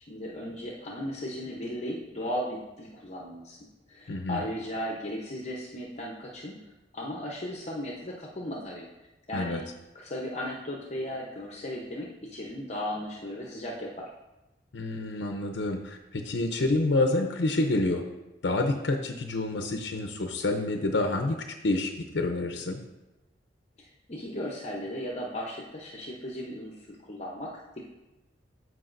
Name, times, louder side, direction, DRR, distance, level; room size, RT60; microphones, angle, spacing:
voice 1, 0.1-3.6 3.9-6.6 6.9-8.9 9.3-9.7 9.9-14.1 23.8-26.8 27.1-27.6, equal, 40° left, -1 dB, 0.8 m, -36 dB
voice 2, 4.1-4.4 9.3-9.6 14.7-18.0 18.4-22.8, left 2 dB, 80° left, 4 dB, 0.6 m, -28 dB
13.5 x 4.7 x 2.5 m, 1.0 s
head